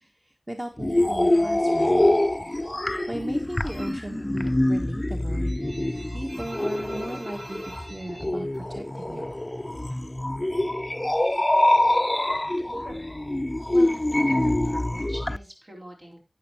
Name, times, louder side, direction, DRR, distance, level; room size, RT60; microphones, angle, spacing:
voice 1, 0.0-2.1 3.1-5.5 6.1-9.2, right 1 dB, 25° right, 2 dB, 1.3 m, -37 dB
sound 1, 0.8-15.4, left 1 dB, 30° left, 0.4 m, -25 dB
sound 2, 3.7-4.1 4.5-9.4 9.6-10.7 11.0-13.8, right 1 dB, 80° right, 2.6 m, -44 dB
voice 2, 13.7-16.2, equal, 60° right, 0 dB, 4.1 m, -42 dB
12.0 x 9.0 x 3.0 m, 0.31 s
wide cardioid pair, 55°, 0 cm